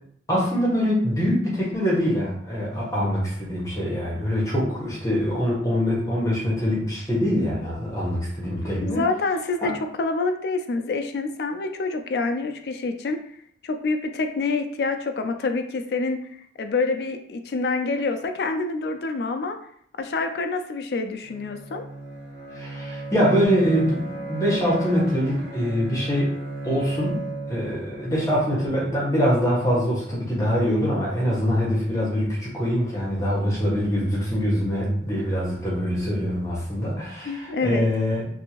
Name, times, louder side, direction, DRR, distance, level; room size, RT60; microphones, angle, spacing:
voice 1, 0.3-9.0 9.6-9.7 22.5-26.3 26.6-38.2, equal, 15° left, -6 dB, 0.9 m, -24 dB
voice 2, 8.8-9.7 10.0-13.2 13.6-16.3 16.6-19.6 20.0-21.8 37.3-37.9, left 3 dB, 65° left, 7 dB, 0.3 m, -27 dB
Bowed string instrument, 21.2-29.1, right 2 dB, 75° right, 1.1 m, -35 dB
2.6 x 2.6 x 2.9 m, 0.64 s
head